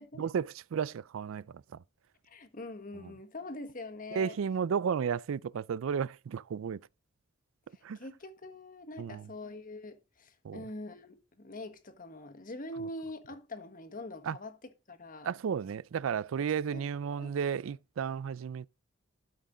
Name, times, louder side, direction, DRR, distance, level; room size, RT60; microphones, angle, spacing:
voice 1, 0.2-1.5 3.0-3.1 4.1-6.8 7.8-8.0 9.0-9.3 10.4-10.6 14.2-14.4 15.3-18.7, right 7 dB, 90° right, 0.4 m, -33 dB
voice 2, 2.2-4.4 7.7-15.3 16.4-16.8 17.2-17.3, left 2 dB, 45° left, 1.5 m, -44 dB
12.5 x 6.4 x 3.8 m
head